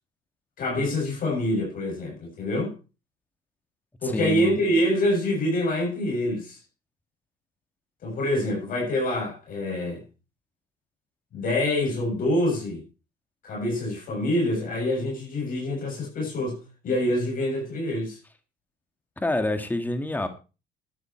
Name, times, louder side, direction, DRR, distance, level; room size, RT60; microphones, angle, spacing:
voice 1, 0.6-2.7 4.0-6.6 8.0-10.0 11.3-12.8 13.4-16.6 16.8-18.2, left 1 dB, 55° left, 7.1 m, -26 dB
voice 2, 4.1-4.5 19.2-20.3, left 2 dB, 10° left, 2.0 m, -27 dB
12.5 x 10.0 x 4.5 m
cardioid pair, 110°, 17 cm